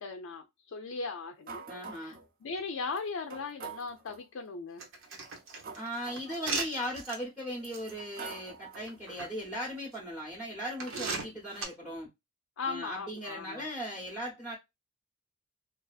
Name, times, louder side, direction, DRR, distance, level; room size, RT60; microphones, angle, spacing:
voice 1, 0.0-4.9 12.6-13.7, left 4 dB, 65° left, 0.4 m, -38 dB
sound 1, 1.5-2.3 2.9-3.0 3.3-4.2 5.1-6.9 7.5-9.0, right 5 dB, 40° right, 0.5 m, -46 dB
voice 2, 1.7-2.1 5.7-12.1 12.7-14.6, equal, 5° right, 0.7 m, -38 dB
sound 2, 4.8-7.2 7.7-7.9 8.7-9.3 9.9-10.0 10.8-11.6, right 4 dB, 60° right, 0.8 m, -36 dB
2.6 x 2.4 x 2.3 m
head